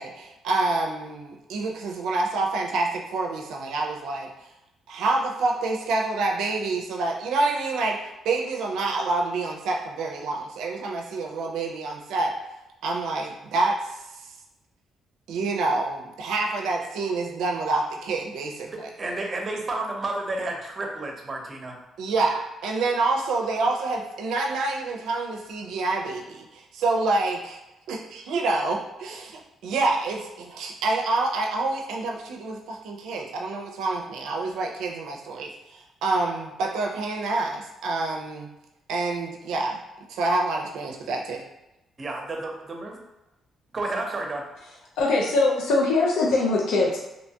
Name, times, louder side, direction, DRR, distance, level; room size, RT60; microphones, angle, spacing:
voice 1, 0.0-4.3 4.9-12.3 12.8-14.3 15.3-18.9 22.0-27.6 27.9-38.5 38.9-39.8 40.1-41.4, right 3 dB, 85° right, 1 dB, 0.4 m, -27 dB
voice 2, 18.7-21.8 42.0-42.9 43.7-44.4, right 2 dB, 35° right, 1 dB, 0.6 m, -31 dB
voice 3, 45.0-47.0, left 3 dB, 90° left, -2 dB, 0.4 m, -21 dB
2.8 x 2.2 x 2.7 m, 0.94 s
cardioid pair, 90°, 0 cm